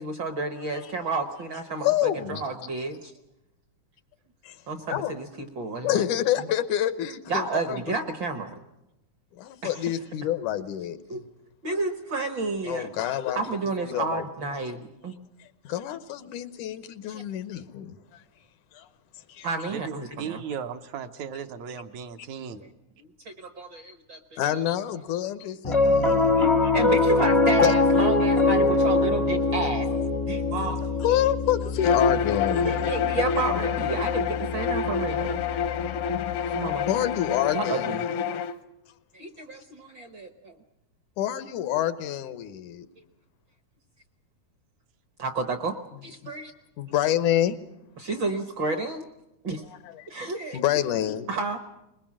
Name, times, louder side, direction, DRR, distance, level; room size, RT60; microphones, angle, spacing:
voice 1, 0.0-3.1 4.7-6.1 7.3-8.6 9.6-9.8 11.1-11.2 11.6-12.9 13.3-15.1 17.1-17.2 19.4-20.4 22.5-22.7 23.0-24.6 26.7-29.9 30.2-30.8 32.6-35.4 36.5-36.8 37.5-38.0 39.1-40.6 45.2-45.8 46.0-46.5 48.0-49.1 49.4-49.7 50.1-50.6 51.0-51.6, right 3 dB, 55° right, 1.3 m, -31 dB
voice 2, 1.7-2.4 4.4-4.6 4.9-5.1 5.8-8.0 9.3-11.2 12.7-13.4 13.9-14.2 15.4-18.2 18.7-18.9 19.3-19.5 24.4-26.7 27.6-27.8 31.0-32.9 36.9-38.4 41.2-42.9 46.8-47.6 49.8-50.1 50.5-51.3, left 12 dB, 85° left, 2.4 m, -28 dB
voice 3, 19.7-22.6, right 7 dB, 75° right, 2.2 m, -36 dB
Piano, 25.6-36.1, left 3 dB, 35° left, 0.4 m, -24 dB
Bowed string instrument, 31.8-38.5, left 6 dB, 70° left, 1.4 m, -27 dB
21.5 x 21.0 x 7.4 m
omnidirectional pair, 3.5 m